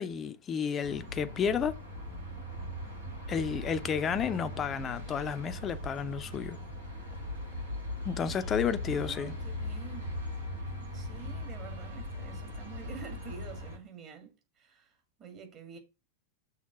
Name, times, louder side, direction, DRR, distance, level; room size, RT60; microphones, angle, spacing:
voice 1, 0.0-1.8 3.3-6.6 8.0-9.3, left 7 dB, 25° left, 0.6 m, -31 dB
sound 1, 0.8-13.8, left 1 dB, 80° right, 3.5 m, -39 dB
voice 2, 8.9-10.1 10.8-15.8, right 7 dB, 30° right, 1.9 m, -48 dB
6.4 x 3.6 x 5.7 m
figure-of-eight pair, 90°, 0 cm